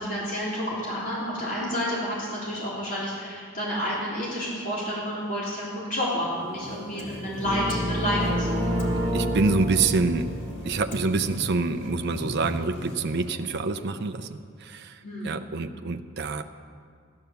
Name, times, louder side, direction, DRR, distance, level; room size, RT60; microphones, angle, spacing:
voice 1, 0.0-8.9 15.0-15.3, equal, 40° left, -7 dB, 3.3 m, -30 dB
sound 1, 6.2-14.5, equal, 60° left, 1.8 m, -39 dB
sound 2, 7.4-11.4, equal, 20° right, 1.4 m, -29 dB
voice 2, 9.1-10.3 10.6-16.4, right 4 dB, 55° right, 7 dB, 0.6 m, -26 dB
14.5 x 10.5 x 6.9 m, 2.1 s
head